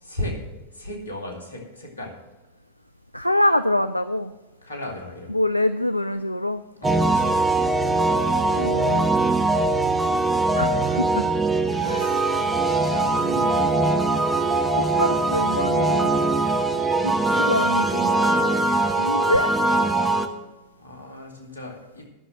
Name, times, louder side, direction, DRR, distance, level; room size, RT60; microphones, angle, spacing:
voice 1, 0.0-0.4 0.7-2.1 4.6-5.3 6.8-7.3 12.4-14.1 20.8-22.0, left 1 dB, 75° left, 0 dB, 2.4 m, -35 dB
voice 2, 3.1-4.3 5.3-6.6 8.0-9.1 10.5-11.3 11.8-12.3 14.8-16.1 17.0-18.1 19.0-19.5, left 1 dB, 90° left, 11 dB, 0.3 m, -25 dB
sound 1, 6.8-20.3, right 2 dB, 5° right, 0.9 m, -21 dB
10.5 x 6.2 x 7.6 m, 1.1 s
figure-of-eight pair, 90°, 0 cm